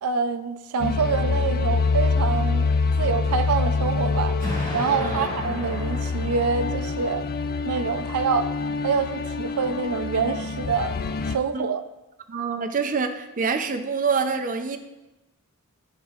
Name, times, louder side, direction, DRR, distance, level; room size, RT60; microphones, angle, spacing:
voice 1, 0.0-2.7 3.0-4.4 4.7-7.3 7.6-8.5 8.8-11.8, right 5 dB, 85° right, 10 dB, 0.5 m, -26 dB
sound 1, 0.8-11.4, left 4 dB, 45° left, 0.3 m, -26 dB
Explosion, 4.4-7.4, left 1 dB, 20° left, 2.3 m, -35 dB
voice 2, 12.3-14.8, right 5 dB, 40° right, 6 dB, 0.5 m, -26 dB
12.0 x 4.0 x 2.4 m, 1.0 s
head